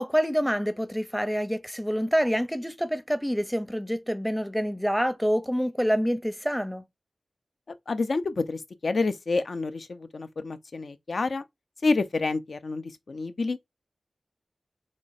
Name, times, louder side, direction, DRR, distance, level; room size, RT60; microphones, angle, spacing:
voice 1, 0.0-6.8, equal, ahead, 0.6 m, -27 dB
voice 2, 7.9-11.4 11.8-13.6, left 3 dB, 70° left, 0.6 m, -28 dB
3.7 x 3.2 x 4.1 m
wide cardioid pair, 70°, 0 cm